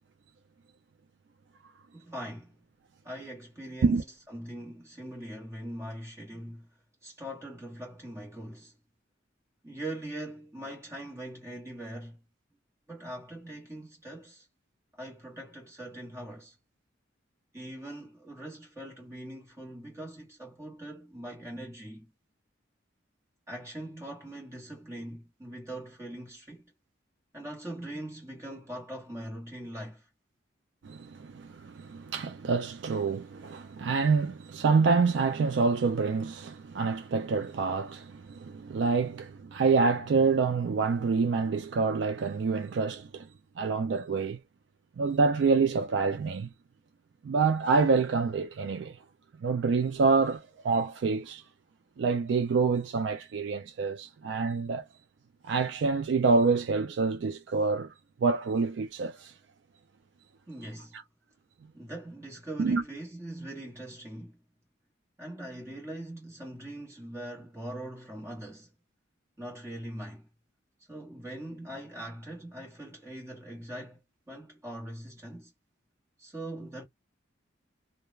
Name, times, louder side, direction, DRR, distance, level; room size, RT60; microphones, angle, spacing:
voice 1, 1.9-2.6 3.0-6.7 7.0-8.8 9.6-12.2 12.9-14.5 14.9-16.6 17.5-22.1 23.5-26.7 27.3-30.1 60.5-61.0 61.7-64.4 65.2-68.7 69.4-70.3 70.9-74.0 74.3-75.5 76.2-76.8, right 1 dB, 15° right, 1.0 m, -42 dB
voice 2, 30.8-43.3 43.6-44.4 45.0-46.5 47.2-49.0 49.4-51.4 52.0-54.8 55.4-57.9 58.2-59.3 62.6-62.8, right 4 dB, 65° right, 0.3 m, -27 dB
2.3 x 2.1 x 3.0 m
head